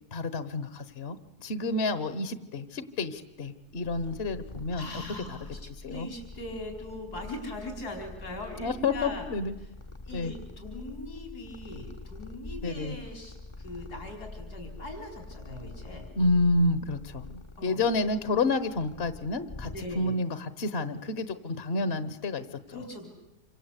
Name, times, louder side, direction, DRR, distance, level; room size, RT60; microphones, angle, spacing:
voice 1, 0.1-4.9 5.8-6.1 8.6-9.5 10.1-10.3 12.6-13.0 16.2-22.8, left 2 dB, 45° left, 12 dB, 1.3 m, -29 dB
Purr, 3.6-20.3, left 2 dB, 25° left, 0.9 m, -45 dB
voice 2, 4.7-9.3 9.6-9.7 10.0-16.1 17.6-17.8 19.7-20.1 22.7-23.1, left 2 dB, 90° left, 3 dB, 5.0 m, -40 dB
27.5 x 26.0 x 8.3 m, 0.93 s
omnidirectional pair, 1.6 m